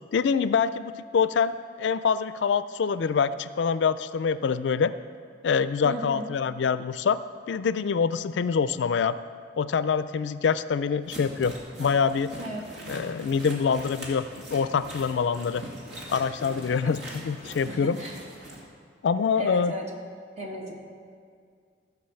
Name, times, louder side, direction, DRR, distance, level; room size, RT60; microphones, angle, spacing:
voice 1, 0.1-4.9 5.4-7.2 7.5-9.2 9.6-11.5 11.8-12.3 12.9-15.6 16.1-18.0 19.0-19.8, left 6 dB, 65° left, 14 dB, 0.4 m, -25 dB
voice 2, 5.8-6.3 12.4-12.6 16.8-16.9 17.7-18.2 19.4-19.9 20.4-20.8, right 1 dB, 35° right, 0 dB, 1.6 m, -35 dB
sound 1, 11.1-18.6, equal, 70° right, 2.2 m, -42 dB
14.5 x 6.0 x 7.0 m, 2.2 s
head